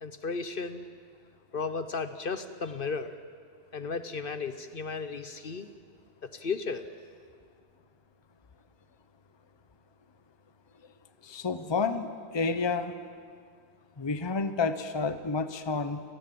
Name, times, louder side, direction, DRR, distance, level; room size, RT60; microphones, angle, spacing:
voice 1, 0.0-0.9 1.5-3.1 3.7-5.7 6.2-6.8, left 4 dB, 55° left, 10 dB, 1.0 m, -34 dB
voice 2, 11.2-12.9 14.0-16.0, left 4 dB, 25° left, 10 dB, 0.9 m, -30 dB
29.0 x 18.5 x 7.6 m, 2.1 s
omnidirectional pair, 1.2 m